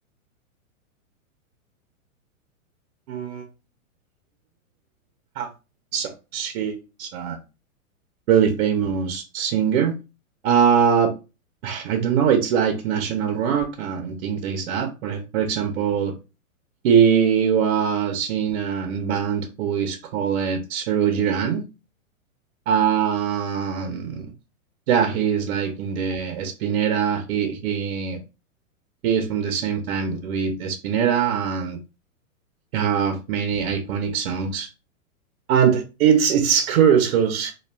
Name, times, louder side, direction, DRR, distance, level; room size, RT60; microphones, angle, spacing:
voice 1, 3.1-3.4 5.4-5.5 5.9-7.4 8.3-9.9 10.4-11.1 11.6-16.1 16.8-21.6 22.7-24.3 24.9-28.2 29.0-31.8 32.7-34.7 35.5-37.5, right 7 dB, 50° right, 0.6 m, -22 dB
2.3 x 2.3 x 3.3 m
hypercardioid pair, 135°, 42 cm